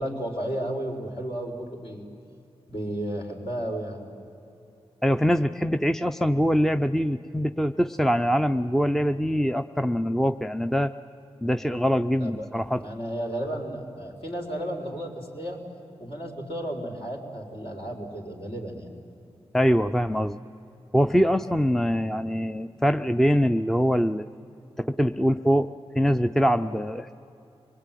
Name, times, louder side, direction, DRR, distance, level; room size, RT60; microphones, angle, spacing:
voice 1, 0.0-2.1 2.7-4.0 12.2-15.6 16.0-18.9, right 1 dB, 60° left, 0 dB, 4.4 m, -33 dB
voice 2, 5.0-10.9 11.4-12.9 19.5-20.4 20.9-24.3 24.8-27.1, equal, 5° left, 9 dB, 0.6 m, -23 dB
25.5 x 20.0 x 9.2 m, 2.7 s
cardioid pair, 60°, 11 cm